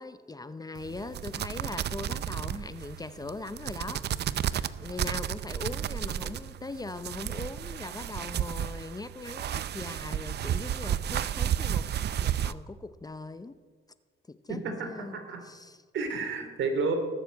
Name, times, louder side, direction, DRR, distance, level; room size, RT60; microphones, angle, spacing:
voice 1, 0.0-4.1 4.3-13.6 14.3-15.2 15.4-15.8, left 3 dB, 20° left, 12 dB, 0.7 m, -40 dB
sound 1, 0.7-12.5, right 10 dB, 60° right, 0.6 m, -32 dB
voice 2, 14.5-15.4 15.9-16.9, right 4 dB, 75° right, 4 dB, 3.1 m, -31 dB
19.0 x 7.2 x 8.3 m, 1.5 s
cardioid pair, 90°, 20 cm